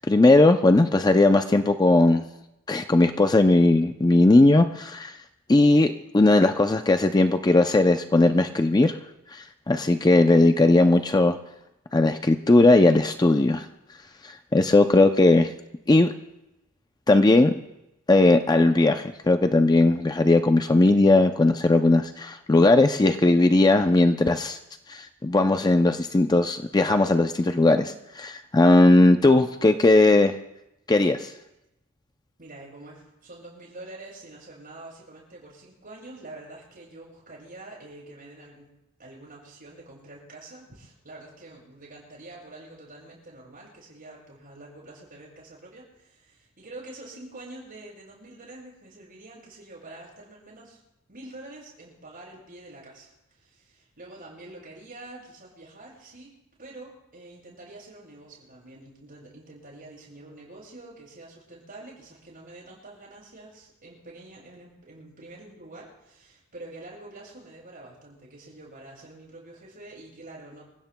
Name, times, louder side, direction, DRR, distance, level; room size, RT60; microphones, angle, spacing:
voice 1, 0.0-2.2 2.7-5.2 5.5-9.0 9.3-11.4 11.9-13.7 14.2-15.5 15.9-16.1 17.1-17.5 18.1-24.6 24.9-30.3 30.9-31.3, left 2 dB, 20° left, 7 dB, 0.4 m, -18 dB
voice 2, 32.4-38.7 39.0-50.8 51.1-56.3 56.6-70.6, right 2 dB, 40° right, -3 dB, 7.1 m, -46 dB
27.0 x 16.5 x 2.2 m, 0.92 s
head